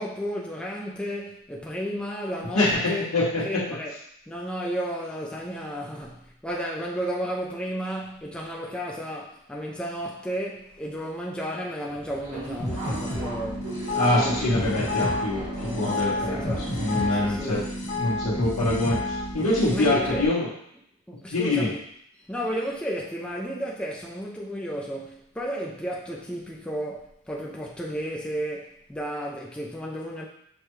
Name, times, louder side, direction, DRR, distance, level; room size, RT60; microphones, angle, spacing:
voice 1, 0.0-3.1 3.4-3.9 4.3-14.9 16.3-16.7 17.1-17.7 19.7-20.3 21.1-21.8 22.2-30.3, equal, 5° left, -3 dB, 0.3 m, -33 dB
voice 2, 2.5-3.6 14.0-17.6 17.9-20.5 21.3-21.7, left 2 dB, 90° left, -9 dB, 1.0 m, -25 dB
Subway metro underground, 11.9-17.5, right 1 dB, 75° right, 1.5 m, -38 dB
sound 1, 12.6-20.3, left 2 dB, 50° left, 1.4 m, -30 dB
6.4 x 2.2 x 3.0 m, 0.73 s
head